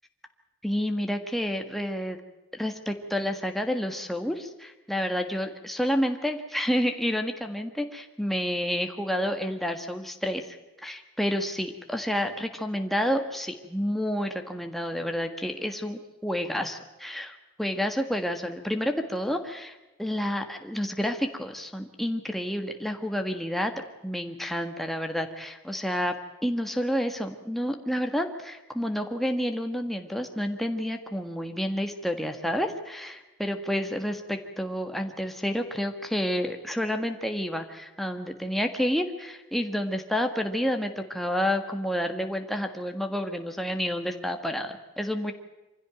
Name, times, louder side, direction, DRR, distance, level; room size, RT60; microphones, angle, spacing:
voice 1, 0.6-2.2 2.5-23.7 24.0-26.2 26.4-45.3, equal, ahead, 4 dB, 1.6 m, -29 dB
25.0 x 16.0 x 9.1 m, 1.1 s
head